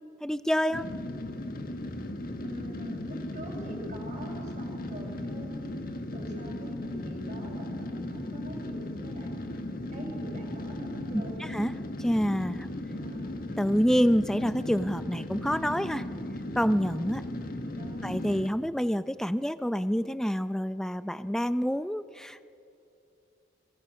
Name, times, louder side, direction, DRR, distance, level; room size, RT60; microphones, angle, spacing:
voice 1, 0.2-0.9 11.1-11.7 12.0-12.7 13.6-16.1 16.6-17.2 18.0-22.5, equal, 5° left, 13 dB, 0.5 m, -27 dB
sound 1, 0.7-18.5, left 1 dB, 50° left, 1.7 m, -36 dB
voice 2, 2.4-5.8 6.1-9.4 9.9-11.6 12.9-13.4 17.6-18.2, right 1 dB, 40° right, 2 dB, 5.8 m, -44 dB
30.0 x 23.0 x 6.4 m, 2.7 s
head